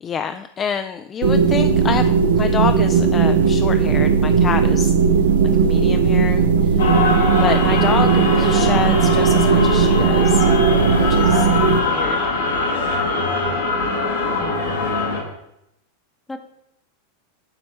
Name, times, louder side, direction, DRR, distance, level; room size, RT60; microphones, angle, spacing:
voice 1, 0.0-4.9 5.6-6.8 7.4-10.5 11.0-11.5 11.8-12.3, left 7 dB, 25° left, 9 dB, 0.3 m, -27 dB
sound 1, 1.2-11.8, right 5 dB, 65° right, 0.5 m, -16 dB
sound 2, 6.8-15.2, left 3 dB, 70° left, 1.4 m, -22 dB
voice 2, 14.3-14.8 16.3-16.4, left 2 dB, 10° left, 8 dB, 0.8 m, -36 dB
11.5 x 4.1 x 3.1 m, 0.82 s
figure-of-eight pair, 90°, 0 cm